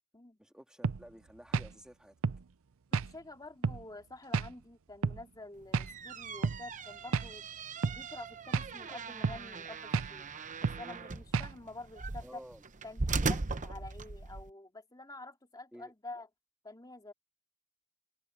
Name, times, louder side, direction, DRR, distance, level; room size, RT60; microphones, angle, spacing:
voice 1, 0.4-2.1 12.2-12.6 15.7-15.9, equal, 5° right, 2.2 m, -52 dB
sound 1, 0.8-1.0 1.5-1.7 2.2-2.4 2.9-3.1 3.6-3.8 4.3-4.5 5.0-5.2 5.7-5.9 6.4-6.6 7.1-7.3 7.8-8.0 8.5-8.7 9.2-9.4 9.9-10.1 10.6-10.8 11.3-11.5, right 5 dB, 65° right, 0.6 m, -31 dB
voice 2, 3.0-7.4 7.9-10.3 10.6-12.4 12.8-16.3 16.6-17.1, left 2 dB, 20° left, 3.1 m, -48 dB
sound 2, 5.6-14.5, right 3 dB, 35° right, 0.8 m, -39 dB
head